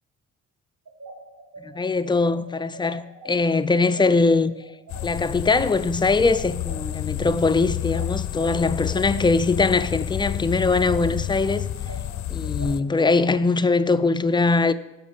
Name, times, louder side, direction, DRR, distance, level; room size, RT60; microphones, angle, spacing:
sound 1, 0.9-10.3 10.6-13.7, right 2 dB, 65° right, 2.2 m, -42 dB
voice 1, 1.6-4.5 5.0-11.7 12.3-14.7, left 3 dB, 15° left, 0.4 m, -21 dB
sound 2, 4.9-12.8, left 12 dB, 65° left, 0.5 m, -30 dB
7.3 x 6.1 x 6.8 m
cardioid pair, 90°, 30 cm